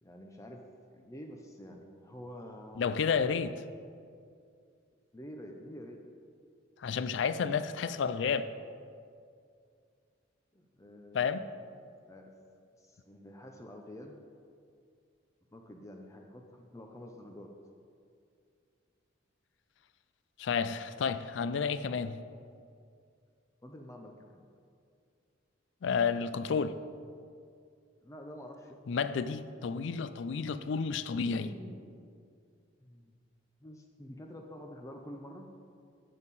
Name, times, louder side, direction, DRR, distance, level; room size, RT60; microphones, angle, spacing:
voice 1, 0.0-0.6 0.9-2.9 5.1-6.0 10.5-11.6 12.1-12.3 12.8-14.2 15.5-17.5 23.6-24.5 28.0-29.0 31.2-31.9 32.8-33.1 33.6-35.5, equal, 15° left, 2 dB, 0.5 m, -48 dB
voice 2, 2.8-3.6 6.8-8.5 11.1-11.4 20.4-22.2 25.8-26.8 28.9-31.5, left 6 dB, 65° left, 13 dB, 0.4 m, -31 dB
9.3 x 7.0 x 4.1 m, 2.3 s
head